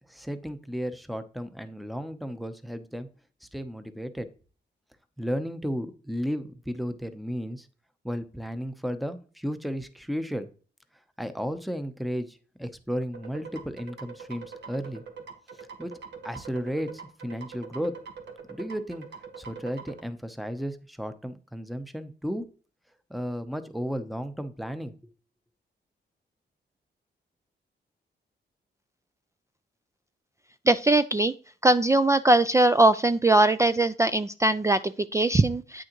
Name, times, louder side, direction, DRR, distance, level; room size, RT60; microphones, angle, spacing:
voice 1, 0.1-3.1 3.4-4.3 5.2-7.7 8.0-10.5 11.2-15.0 15.6-16.0 16.2-18.0 18.5-19.1 19.4-22.5 23.1-25.1, equal, ahead, 10 dB, 0.7 m, -34 dB
sound 1, 13.1-20.0, right 6 dB, 70° right, 1.4 m, -43 dB
voice 2, 30.7-31.3 31.6-35.8, right 2 dB, 15° right, 12 dB, 0.3 m, -21 dB
9.0 x 6.3 x 3.0 m, 0.39 s
cardioid pair, 100°, 19 cm